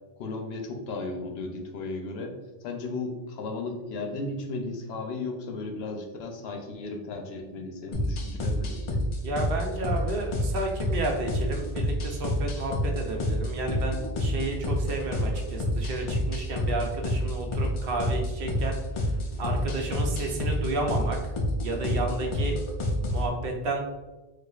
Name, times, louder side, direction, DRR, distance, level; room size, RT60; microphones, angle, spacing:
voice 1, 0.2-2.4 2.6-9.1, left 3 dB, 90° left, 3 dB, 0.9 m, -35 dB
sound 1, 7.9-23.3, equal, 50° left, 0.4 m, -28 dB
voice 2, 9.2-18.7 19.4-21.2 21.6-22.6 23.0-23.8, right 2 dB, 70° right, 2 dB, 0.8 m, -31 dB
4.3 x 2.4 x 2.3 m, 1.2 s
omnidirectional pair, 1.0 m